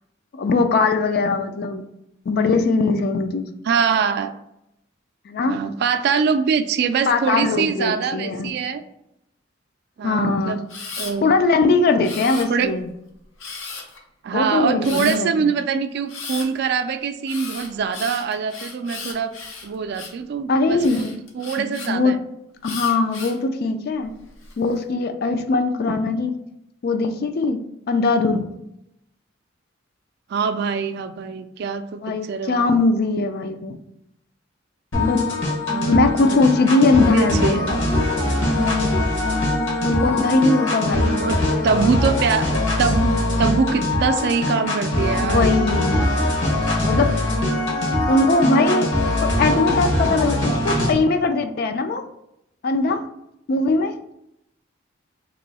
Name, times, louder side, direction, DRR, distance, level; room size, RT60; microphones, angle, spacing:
voice 1, 0.3-1.8 2.3-3.5 5.3-5.6 7.1-8.5 10.0-10.6 11.2-12.9 14.3-15.5 20.5-21.1 21.6-22.1 22.6-24.1 24.6-26.4 26.8-27.6 27.9-28.5 32.0-33.8 34.9-35.3 35.9-37.7 39.8-41.2 45.2-46.1 46.8-47.1 48.1-48.9 49.2-52.0 52.6-53.0 53.5-53.9, left 3 dB, 55° left, 8 dB, 0.4 m, -20 dB
voice 2, 3.6-4.3 5.5-8.8 10.0-10.6 11.0-11.2 12.5-12.7 14.2-19.3 19.6-21.1 21.3-22.2 30.3-32.8 35.7-36.4 37.1-37.8 41.2-45.5, right 6 dB, 60° right, 9 dB, 0.3 m, -23 dB
Camera, 10.7-11.1 12.0-12.8 13.4-14.0 14.8-15.2 16.1-16.5 17.3-20.2 20.8-21.9 22.6-23.4 24.0-24.5, left 4 dB, 90° left, 0.8 m, -35 dB
sound 1, 34.9-50.9, left 1 dB, 70° left, 1.3 m, -22 dB
3.0 x 2.7 x 4.1 m, 0.82 s
head